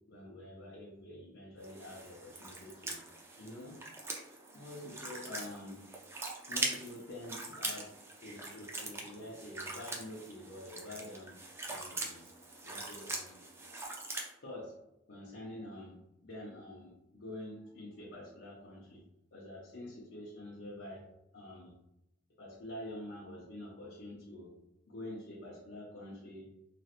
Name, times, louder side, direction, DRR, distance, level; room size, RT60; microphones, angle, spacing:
voice 1, 0.1-3.0 3.4-3.8 4.5-5.8 6.5-7.9 8.2-11.3 11.7-12.3 12.6-13.4 14.4-14.8 15.1-16.0 16.2-19.0 19.3-21.1 21.3-21.8 22.4-24.5 24.9-26.5, left 1 dB, 60° left, -5 dB, 0.6 m, -47 dB
sound 1, 1.6-14.3, right 2 dB, 15° right, 0.4 m, -42 dB
3.0 x 2.8 x 2.4 m, 0.87 s
head